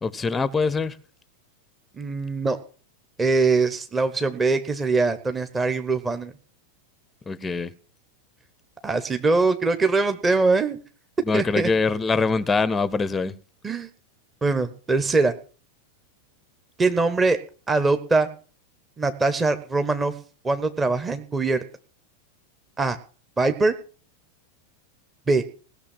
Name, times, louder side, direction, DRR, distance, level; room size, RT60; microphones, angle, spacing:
voice 1, 0.0-0.9 7.3-7.7 11.3-13.3, left 4 dB, 15° left, 0.7 m, -23 dB
voice 2, 2.0-2.6 3.2-6.3 8.8-10.8 11.3-11.7 13.6-13.9 14.4-15.3 16.8-17.4 17.7-18.3 19.0-20.1 20.4-21.6 22.8-23.0 23.4-23.7 25.3-25.4, right 3 dB, 15° right, 1.0 m, -22 dB
17.5 x 6.6 x 7.3 m
figure-of-eight pair, 90°, 0 cm